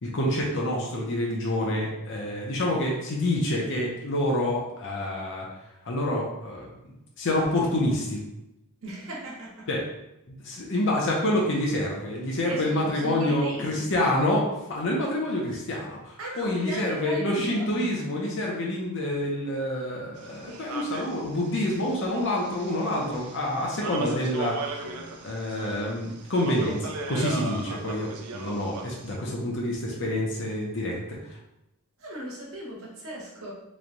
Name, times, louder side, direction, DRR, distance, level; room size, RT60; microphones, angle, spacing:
voice 1, 0.0-5.5 5.8-6.7 7.2-8.2 9.7-9.8 10.3-31.4, left 1 dB, 60° left, -2 dB, 0.7 m, -27 dB
voice 2, 8.8-9.6 12.4-14.0 14.2-14.3 16.2-17.9 32.0-33.5, right 1 dB, 65° right, -4 dB, 1.1 m, -37 dB
sound 1, 20.2-29.2, right 3 dB, 80° right, 0.5 m, -38 dB
3.1 x 2.3 x 3.9 m, 0.89 s
head